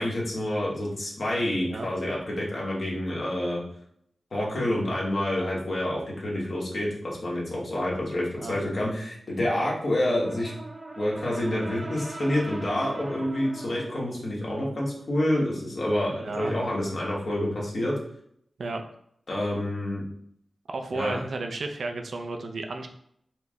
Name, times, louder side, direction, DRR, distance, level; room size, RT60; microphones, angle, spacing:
voice 1, 0.0-3.6 4.3-10.5 11.0-18.0 19.3-20.0 20.9-21.2, left 1 dB, 60° left, -5 dB, 1.3 m, -28 dB
Brass instrument, 9.9-14.1, right 2 dB, 45° right, 0.7 m, -40 dB
voice 2, 16.1-16.5 18.6-18.8 20.7-22.9, right 3 dB, 75° right, 5 dB, 0.5 m, -33 dB
4.5 x 2.1 x 3.6 m, 0.70 s
wide cardioid pair, 75°, 0 cm